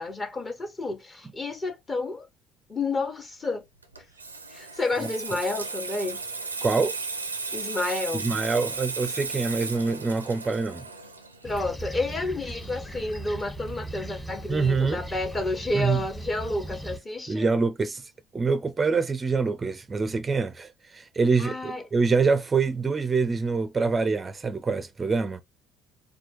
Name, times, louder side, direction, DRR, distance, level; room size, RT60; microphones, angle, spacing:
voice 1, 0.0-2.3 2.7-3.6 4.5-6.2 7.5-8.2 11.4-17.5 21.4-21.8, left 2 dB, 30° left, 1.2 m, -30 dB
Water tap faucet / Sink (filling or washing), 3.8-13.1 13.4-13.7, right 4 dB, 90° right, 0.4 m, -35 dB
voice 2, 6.6-7.0 8.1-10.8 14.5-15.0 15.7-16.0 17.3-25.4, right 4 dB, 30° right, 0.4 m, -25 dB
Fixed-wing aircraft airplane, 11.4-17.0, right 1 dB, 10° left, 1.5 m, -38 dB
4.4 x 2.3 x 3.0 m
figure-of-eight pair, 55°, 0 cm